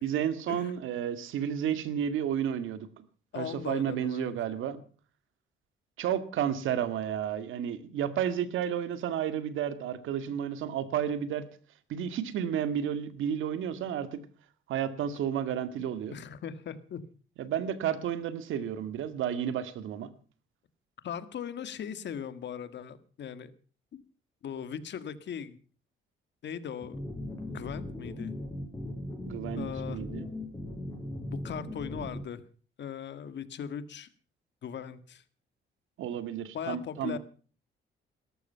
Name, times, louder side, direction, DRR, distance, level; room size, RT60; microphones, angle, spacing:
voice 1, 0.0-3.0 3.4-4.8 6.0-11.5 11.9-14.2 14.7-16.1 17.4-20.1 29.3-30.3 36.0-37.2, right 9 dB, 85° right, 12 dB, 2.0 m, -32 dB
voice 2, 3.3-4.3 15.8-17.0 21.0-23.5 23.9-24.0 24.4-25.6 26.4-27.0 27.5-28.3 29.6-30.0 31.3-32.4 32.8-34.1 34.6-35.2 36.5-37.2, left 8 dB, 65° left, 13 dB, 1.8 m, -39 dB
sound 1, 26.8-32.2, left 1 dB, 15° left, 7.4 m, -38 dB
18.0 x 14.0 x 5.7 m, 0.41 s
cardioid pair, 90°, 20 cm